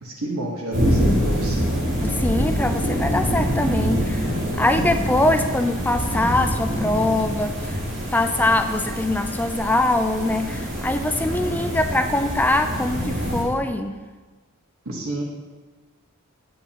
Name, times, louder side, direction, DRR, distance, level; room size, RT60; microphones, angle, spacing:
voice 1, 0.0-1.8 14.8-15.2, right 1 dB, 90° right, -1 dB, 1.1 m, -30 dB
sound 1, 0.7-13.4, equal, 50° right, 2.8 m, -25 dB
voice 2, 2.0-4.3 4.6-7.5 8.1-14.0, left 2 dB, 10° left, 7 dB, 0.3 m, -22 dB
9.1 x 8.2 x 2.9 m, 1.3 s
head